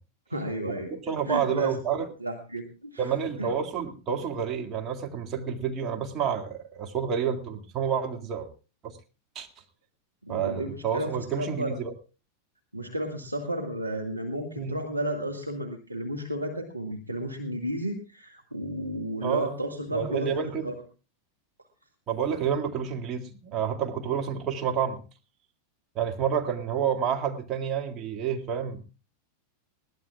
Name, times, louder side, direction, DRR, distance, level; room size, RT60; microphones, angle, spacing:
voice 1, 0.3-0.9 1.3-1.8 2.2-3.5 10.2-11.8 12.7-20.7, right 1 dB, 85° right, 4 dB, 1.5 m, -33 dB
voice 2, 0.9-2.1 3.0-8.5 8.8-9.0 9.4-9.5 10.3-11.9 14.6-14.8 19.2-19.5 19.9-20.7 22.1-25.0 26.0-28.8, right 7 dB, 30° right, 4 dB, 2.2 m, -29 dB
21.5 x 17.0 x 2.4 m, 0.35 s
figure-of-eight pair, 90°, 0 cm